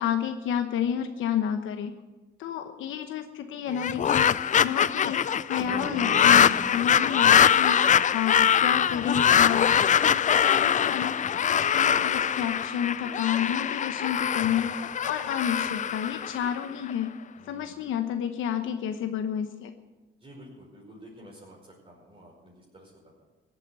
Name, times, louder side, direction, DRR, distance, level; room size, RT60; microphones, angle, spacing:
voice 1, 0.0-1.9 2.4-4.3 4.6-17.1 17.5-19.7, left 9 dB, 80° left, 7 dB, 1.0 m, -30 dB
sound 1, 3.7-16.9, left 8 dB, 40° left, 0.4 m, -23 dB
sound 2, 5.6-8.3, equal, 15° right, 4.9 m, -40 dB
voice 2, 17.3-17.9 20.2-23.2, equal, 30° right, -4 dB, 5.2 m, -50 dB
16.0 x 9.1 x 8.1 m, 1.2 s
cardioid pair, 90°, 20 cm